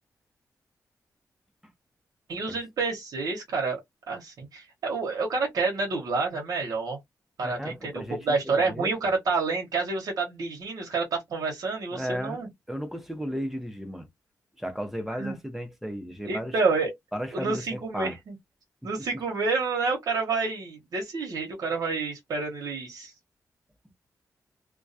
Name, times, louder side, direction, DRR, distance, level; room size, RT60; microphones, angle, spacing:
voice 1, 2.3-3.8 4.1-7.0 7.4-12.5 15.2-15.4 16.2-16.9 17.3-18.4 18.8-23.1, right 4 dB, 80° right, 0.9 m, -29 dB
voice 2, 7.4-8.9 11.9-12.4 12.7-14.1 14.6-16.5 17.1-18.2 19.0-19.2, equal, 5° right, 0.7 m, -35 dB
2.2 x 2.2 x 2.6 m
wide cardioid pair, 120°, 6 cm